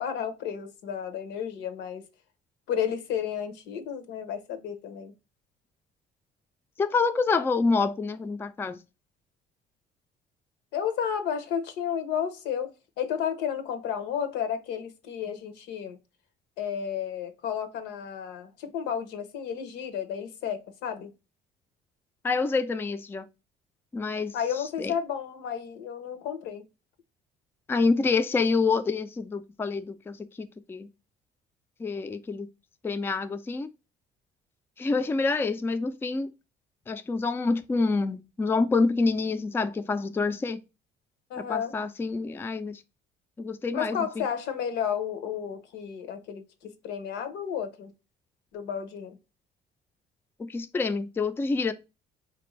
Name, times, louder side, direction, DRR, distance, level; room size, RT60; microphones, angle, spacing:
voice 1, 0.0-2.0 2.7-5.1 10.7-12.7 13.0-16.0 16.6-21.1 24.3-26.6 41.3-41.7 43.7-47.9 48.5-49.2, left 8 dB, 90° left, 0.8 m, -32 dB
voice 2, 6.8-8.8 22.2-23.3 23.9-24.3 24.8-24.9 27.7-30.9 31.8-32.5 32.8-33.7 34.8-36.3 36.9-40.6 41.5-42.8 43.4-44.2 50.4-51.7, left 4 dB, 15° left, 0.3 m, -27 dB
4.2 x 2.5 x 3.1 m
cardioid pair, 110°, 17 cm